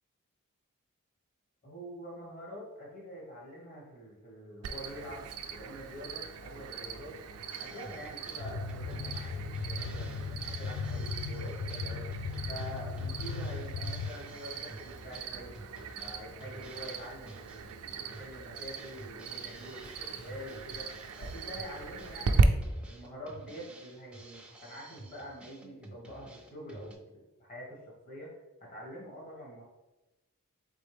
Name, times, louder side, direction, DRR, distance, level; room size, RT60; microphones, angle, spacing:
voice 1, 1.6-7.1 7.6-12.1 12.5-15.6 16.0-27.8 28.0-28.3 28.6-29.6, equal, 35° left, -3 dB, 1.3 m, -46 dB
Cricket, 4.6-22.4, right 5 dB, 85° right, 0.4 m, -38 dB
Drum kit, 7.5-26.9, right 2 dB, 5° right, 0.4 m, -52 dB
sound 1, 8.4-14.1, left 4 dB, 75° left, 0.3 m, -37 dB
4.1 x 3.3 x 3.4 m, 1.0 s
head